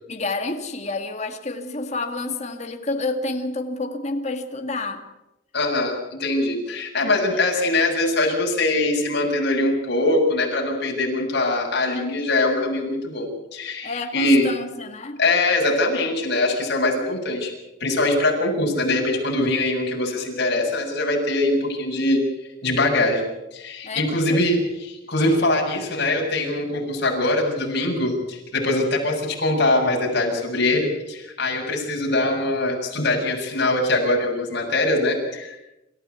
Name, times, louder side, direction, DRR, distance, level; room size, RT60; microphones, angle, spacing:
voice 1, 0.1-5.1 6.5-6.6 7.3-7.4 13.8-15.2 23.8-24.5, left 2 dB, 35° left, 5 dB, 2.1 m, -29 dB
voice 2, 5.5-14.5 15.2-17.5 17.8-22.2 22.6-24.6 24.9-35.6, left 2 dB, 60° left, -1 dB, 7.2 m, -22 dB
27.0 x 15.0 x 8.3 m, 0.92 s
head